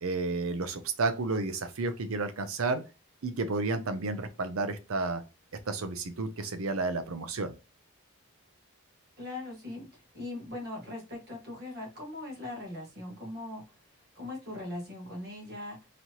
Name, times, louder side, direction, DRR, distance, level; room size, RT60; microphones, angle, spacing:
voice 1, 0.0-2.8 3.2-5.2 5.7-7.5, right 3 dB, 75° right, 0.7 m, -31 dB
voice 2, 9.2-13.7 14.1-15.9, left 2 dB, 45° right, 1.7 m, -40 dB
4.1 x 3.0 x 2.9 m
head